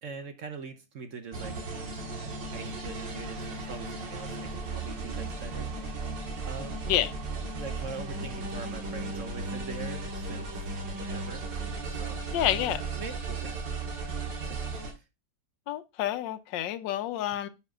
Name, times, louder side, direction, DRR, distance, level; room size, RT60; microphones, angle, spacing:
voice 1, 0.0-1.6 2.5-5.7 6.4-6.8 7.5-10.6 11.0-11.6 11.9-12.2 13.0-13.9 14.5-14.6 14.9-15.0 17.3-17.4, right 4 dB, 55° right, 1.0 m, -42 dB
sound 1, 1.3-14.9, right 3 dB, 90° right, 2.3 m, -35 dB
voice 2, 12.3-12.9 15.7-17.5, left 12 dB, 85° left, 1.4 m, -29 dB
9.7 x 5.9 x 2.4 m
omnidirectional pair, 1.9 m